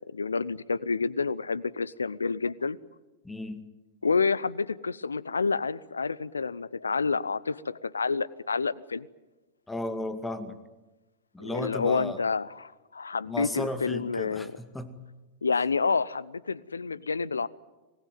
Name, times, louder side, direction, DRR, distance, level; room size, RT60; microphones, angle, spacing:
voice 1, 0.1-2.8 4.0-9.1 11.4-14.5 15.4-17.5, left 4 dB, 80° left, 22 dB, 0.8 m, -29 dB
voice 2, 3.2-3.6 9.7-10.6 11.3-12.2 13.3-15.0, left 1 dB, 10° left, 10 dB, 2.2 m, -34 dB
26.0 x 19.5 x 9.3 m, 1.1 s
figure-of-eight pair, 95°, 0 cm